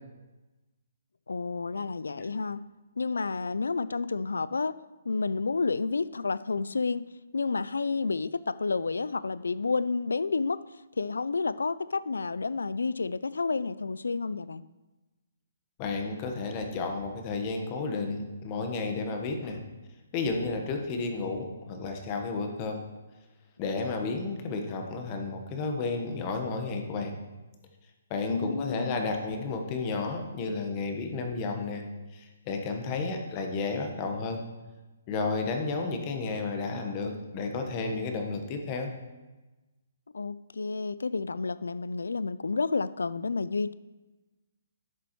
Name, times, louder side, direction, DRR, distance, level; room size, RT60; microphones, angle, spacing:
voice 1, 1.3-2.6 3.0-4.7 5.1-7.0 7.3-10.6 11.0-14.6 28.3-29.1 40.1-43.7, left 4 dB, 85° left, 17 dB, 0.3 m, -30 dB
voice 2, 15.8-19.6 20.1-22.8 23.6-27.2 28.1-31.8 32.1-34.4 35.1-38.9, left 3 dB, 30° left, 4 dB, 1.2 m, -32 dB
11.0 x 7.1 x 3.1 m, 1.1 s
hypercardioid pair, 140°, 0 cm